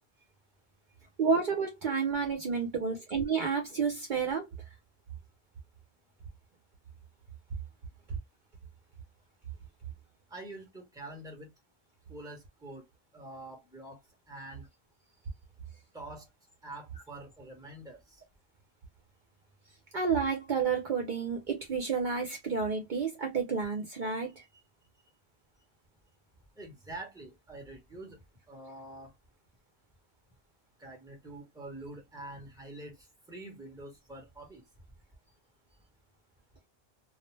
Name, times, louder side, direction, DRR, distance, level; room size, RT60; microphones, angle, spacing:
voice 1, 1.2-4.5 19.9-24.4, right 5 dB, 55° right, 0.7 m, -30 dB
voice 2, 10.3-11.5 12.1-12.9 13.1-14.0 14.3-14.6 15.9-16.3 16.6-18.2 26.6-28.2 28.5-29.1 30.8-34.6, right 2 dB, 5° right, 0.9 m, -46 dB
2.4 x 2.0 x 3.1 m
omnidirectional pair, 1.0 m